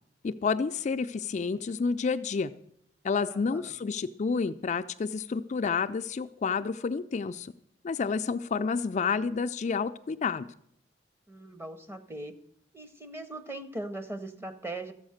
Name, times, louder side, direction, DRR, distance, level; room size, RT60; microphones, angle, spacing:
voice 1, 0.2-2.5 3.0-7.5 7.8-10.5, left 5 dB, 40° left, 9 dB, 0.4 m, -29 dB
voice 2, 3.3-3.7 11.3-12.3 12.7-14.9, right 2 dB, 15° right, 10 dB, 0.9 m, -40 dB
13.5 x 8.0 x 6.4 m, 0.71 s
head